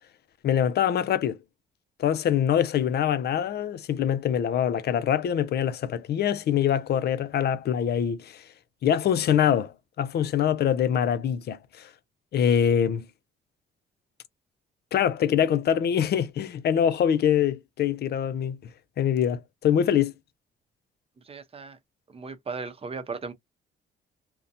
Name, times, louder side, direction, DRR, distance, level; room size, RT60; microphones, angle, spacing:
voice 1, 0.4-1.4 2.0-8.4 8.8-11.9 12.3-13.1 14.9-18.6 19.0-20.1, left 9 dB, 55° left, 0.4 m, -24 dB
voice 2, 21.3-21.8 22.1-23.3, right 4 dB, 30° right, 0.7 m, -36 dB
2.6 x 2.1 x 2.6 m
cardioid pair, 90°, 20 cm